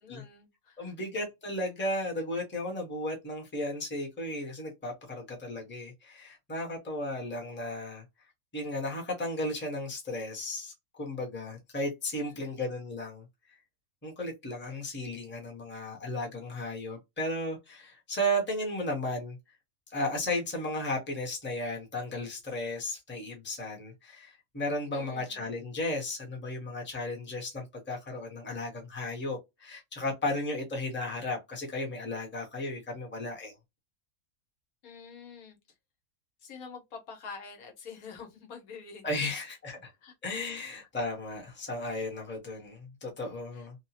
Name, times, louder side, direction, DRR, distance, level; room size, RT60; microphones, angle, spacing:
voice 1, 0.0-0.9 12.1-12.6 24.9-25.5 34.8-35.6 36.4-39.3 40.0-40.1 40.5-40.6 43.5-43.7, left 5 dB, 75° left, 1.4 m, -47 dB
voice 2, 0.8-8.0 8.5-13.2 14.0-19.4 19.9-33.5 39.0-39.9 40.2-43.8, left 1 dB, 10° left, 0.8 m, -35 dB
2.9 x 2.1 x 2.8 m
omnidirectional pair, 1.5 m